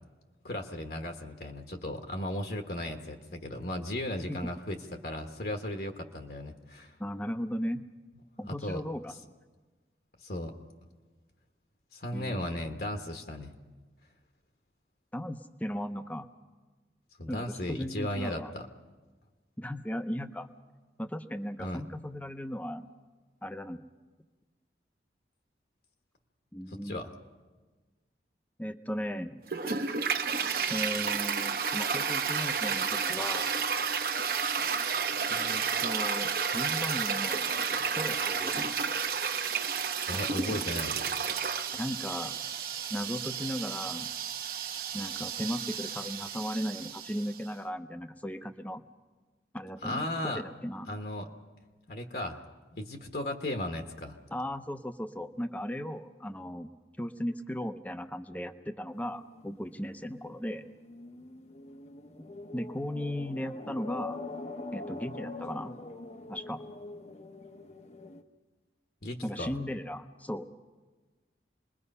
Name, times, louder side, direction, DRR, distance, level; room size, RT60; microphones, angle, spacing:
voice 1, 0.4-6.9 8.6-8.8 10.2-10.5 11.9-13.6 17.2-18.7 21.6-21.8 26.7-27.1 40.1-40.9 49.8-50.4 50.9-51.3 51.9-52.4 52.7-54.2 69.0-69.6, left 1 dB, 55° left, 4 dB, 1.3 m, -36 dB
voice 2, 7.0-7.8 8.4-9.1 12.1-12.5 15.1-16.3 17.3-18.5 19.6-20.5 21.0-22.9 23.4-23.9 26.5-27.0 28.6-29.4 30.7-33.5 35.3-37.5 37.9-38.8 40.1-40.6 41.7-42.4 42.9-44.1 44.9-48.8 49.5-50.9 54.3-56.7 57.0-60.7 62.5-64.2 64.7-65.7 66.3-66.6 69.2-70.5, equal, 10° left, 9 dB, 0.7 m, -36 dB
Toilet flush, 29.5-47.4, right 6 dB, 55° right, 1.1 m, -31 dB
sound 1, 58.9-68.2, left 2 dB, 40° left, 0.8 m, -44 dB
26.5 x 21.5 x 5.5 m, 1.3 s
head